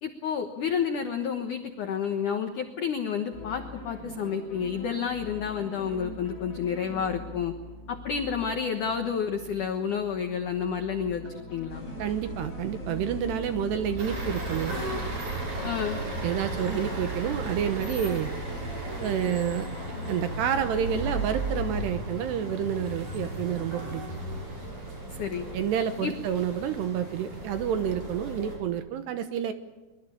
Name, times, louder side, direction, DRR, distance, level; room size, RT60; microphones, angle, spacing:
voice 1, 0.0-7.5 7.9-11.8 15.6-16.0 25.1-25.5 26.0-26.1, left 7 dB, 75° left, 6 dB, 1.8 m, -30 dB
sound 1, 3.3-21.2, left 2 dB, 30° left, 4.9 m, -42 dB
sound 2, 11.7-19.3, right 2 dB, 15° right, 5.6 m, -40 dB
voice 2, 12.0-14.8 16.2-18.3 19.0-19.7 20.1-24.0 25.5-29.5, right 9 dB, 70° right, 9 dB, 2.9 m, -29 dB
sound 3, 14.0-28.6, right 2 dB, 40° right, 7.1 m, -35 dB
24.0 x 23.0 x 8.5 m, 1.1 s
omnidirectional pair, 5.6 m